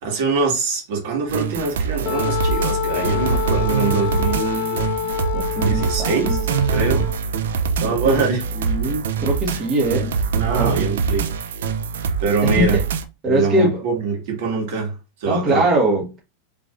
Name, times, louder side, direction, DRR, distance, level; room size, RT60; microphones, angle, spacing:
voice 1, 0.0-4.9 5.6-6.4 6.7-7.1 7.8-8.4 10.4-11.3 12.2-12.8 13.3-14.9 15.2-15.7, right 4 dB, 65° right, 2.0 m, -23 dB
sound 1, 1.3-13.0, right 6 dB, 85° right, 0.5 m, -23 dB
Wind instrument woodwind instrument, 2.1-7.2, left 10 dB, 35° left, 0.9 m, -27 dB
voice 2, 5.3-6.4 7.9-8.1 8.6-10.1 10.5-10.7 12.4-12.8 13.2-13.8 15.3-16.2, right 1 dB, 25° right, 1.6 m, -21 dB
4.8 x 3.4 x 2.5 m
supercardioid pair, 135°, 0 cm